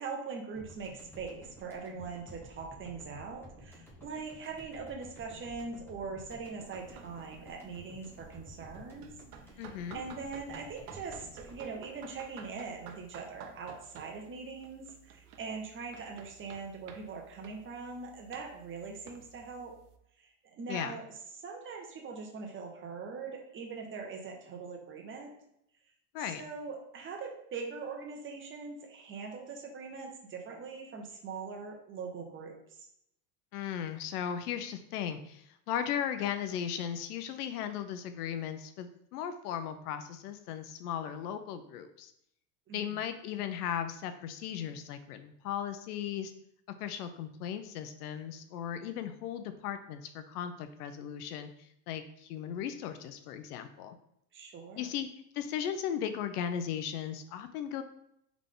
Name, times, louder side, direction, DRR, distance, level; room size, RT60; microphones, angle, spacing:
voice 1, 0.0-9.1 9.5-9.6 9.9-19.7 20.2-21.0 21.3-25.3 26.2-32.9 42.7-43.0 54.3-54.9, right 5 dB, 25° right, 1 dB, 1.0 m, -42 dB
sound 1, 0.6-13.0, equal, 5° left, 0.9 m, -53 dB
sound 2, 6.6-20.0, right 7 dB, 90° right, 0.7 m, -54 dB
voice 2, 9.6-10.0 20.7-21.0 26.1-26.4 33.5-42.1 42.7-46.3 46.8-54.0 54.8-55.1 55.3-57.8, left 9 dB, 85° left, 9 dB, 0.7 m, -37 dB
3.8 x 3.5 x 3.7 m, 0.75 s
supercardioid pair, 125°, 44 cm